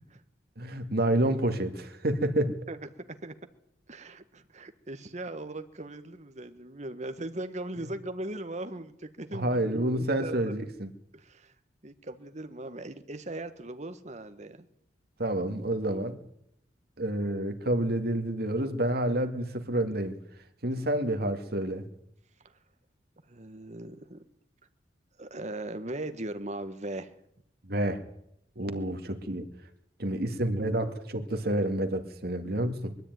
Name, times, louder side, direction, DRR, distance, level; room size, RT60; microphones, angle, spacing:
voice 1, 0.6-2.5 9.3-10.9 15.2-16.2 17.0-20.2 20.6-21.8 27.6-28.0 28.6-29.5 30.0-33.0, right 1 dB, 60° right, 7 dB, 2.2 m, -29 dB
voice 2, 2.7-3.3 3.9-10.6 11.1-11.5 11.8-14.7 20.8-20.9 23.3-24.2 25.2-27.1, right 2 dB, 40° right, 9 dB, 1.5 m, -39 dB
22.0 x 13.5 x 9.4 m, 0.75 s
head